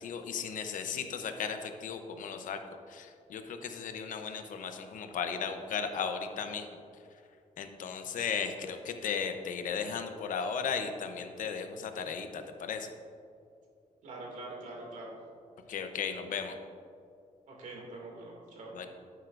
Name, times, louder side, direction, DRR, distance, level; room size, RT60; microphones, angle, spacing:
voice 1, 0.0-2.6 2.9-6.8 7.6-12.9 15.7-16.6 18.7-18.9, left 6 dB, 75° left, 7 dB, 0.7 m, -36 dB
voice 2, 14.0-15.1 17.5-18.7, right 2 dB, 65° right, -1 dB, 2.3 m, -44 dB
11.0 x 9.3 x 2.5 m, 2.4 s
wide cardioid pair, 175°, 14 cm